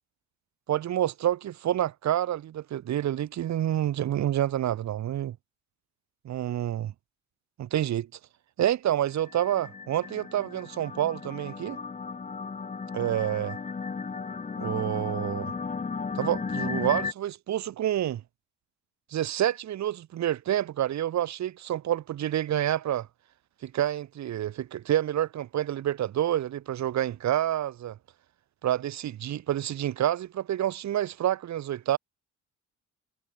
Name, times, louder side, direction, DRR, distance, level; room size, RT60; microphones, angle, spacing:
voice 1, 0.7-5.4 6.2-6.9 7.6-8.1 8.6-11.8 12.9-13.6 14.6-15.5 16.1-18.2 19.1-23.1 23.6-28.0 28.6-32.0, right 12 dB, 65° right, 1.5 m, -28 dB
sound 1, 9.2-17.1, left 5 dB, 25° left, 1.0 m, -35 dB
cardioid pair, 90°, 30 cm